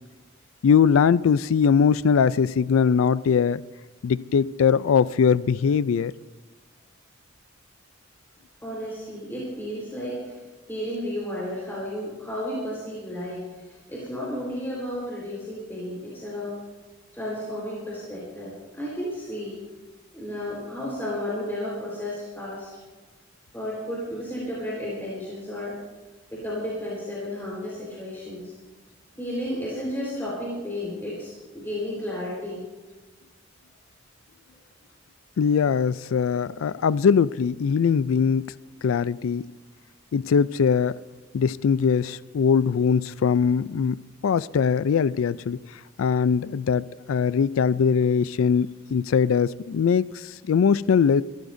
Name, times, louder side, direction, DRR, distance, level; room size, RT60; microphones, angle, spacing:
voice 1, 0.6-3.6 4.0-6.1 35.4-38.5 38.8-39.5 40.1-41.0 41.3-51.2, left 6 dB, 90° left, 18 dB, 0.4 m, -21 dB
voice 2, 8.6-10.4 10.7-16.6 17.1-19.6 20.1-22.7 23.5-25.7 26.3-28.5 29.2-32.6, left 1 dB, 10° left, -6 dB, 4.2 m, -33 dB
25.0 x 14.5 x 2.7 m, 1.3 s
head